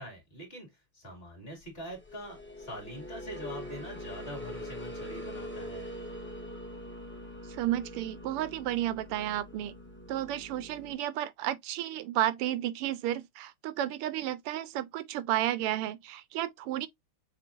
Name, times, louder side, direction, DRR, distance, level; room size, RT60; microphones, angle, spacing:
voice 1, 0.0-5.9, right 1 dB, 25° left, 2.4 m, -44 dB
sound 1, 1.9-10.9, left 1 dB, 5° left, 0.9 m, -43 dB
voice 2, 7.5-9.7 10.1-16.9, right 13 dB, 85° right, 1.5 m, -32 dB
6.5 x 2.9 x 2.5 m
omnidirectional pair, 2.4 m